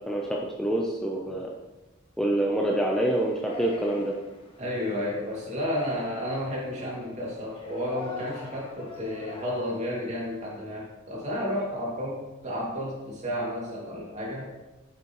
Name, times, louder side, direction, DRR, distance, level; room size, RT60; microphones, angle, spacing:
voice 1, 0.1-1.5 2.2-4.1, right 1 dB, 5° left, -2 dB, 0.6 m, -26 dB
Yell, 2.9-10.6, left 3 dB, 30° left, 1.2 m, -44 dB
voice 2, 4.6-14.5, equal, 35° right, -4 dB, 2.3 m, -32 dB
8.3 x 6.7 x 3.1 m, 1.1 s
head